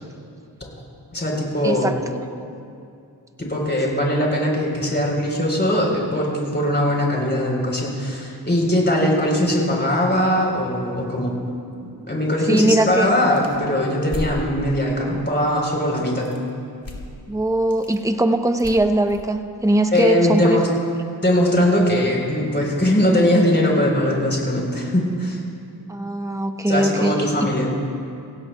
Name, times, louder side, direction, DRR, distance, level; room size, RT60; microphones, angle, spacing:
voice 1, 1.1-2.0 3.4-11.3 12.1-16.3 19.9-20.7 21.2-25.4 26.7-27.7, left 1 dB, 25° left, -2 dB, 3.8 m, -20 dB
voice 2, 1.6-2.0 12.5-13.1 17.3-20.6 25.9-27.5, right 1 dB, 10° right, 6 dB, 0.8 m, -20 dB
sound 1, 12.6-14.4 16.2-16.5 16.8-17.2 17.5-18.0 18.6-20.1, left 2 dB, 55° left, 2.4 m, -35 dB
25.0 x 16.5 x 2.3 m, 2.5 s
wide cardioid pair, 55°, 41 cm